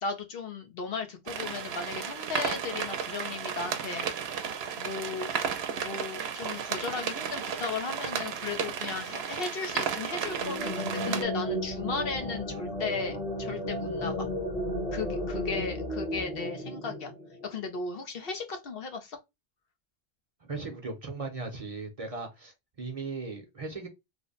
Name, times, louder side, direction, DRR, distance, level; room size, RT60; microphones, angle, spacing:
voice 1, 0.0-4.3 4.8-5.3 5.7-14.3 14.9-17.1 17.4-19.2, left 4 dB, 70° left, 1.0 m, -36 dB
sound 1, 1.3-11.2, right 7 dB, 85° right, 0.9 m, -34 dB
sound 2, 10.2-17.6, equal, 40° left, 1.2 m, -34 dB
voice 2, 20.4-23.9, right 3 dB, 40° right, 0.8 m, -38 dB
3.2 x 2.1 x 3.8 m
omnidirectional pair, 1.0 m